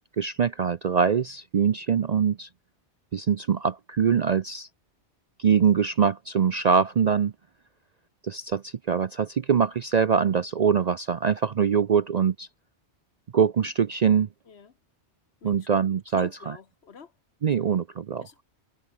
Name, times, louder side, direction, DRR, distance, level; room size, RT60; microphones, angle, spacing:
voice 1, 0.2-2.5 3.1-4.7 5.4-7.3 8.2-12.5 13.3-14.3 15.4-16.6 17.4-18.3, right 7 dB, 50° right, 0.5 m, -23 dB
voice 2, 16.1-17.1 18.2-18.4, left 6 dB, 65° left, 1.5 m, -46 dB
omnidirectional pair, 1.2 m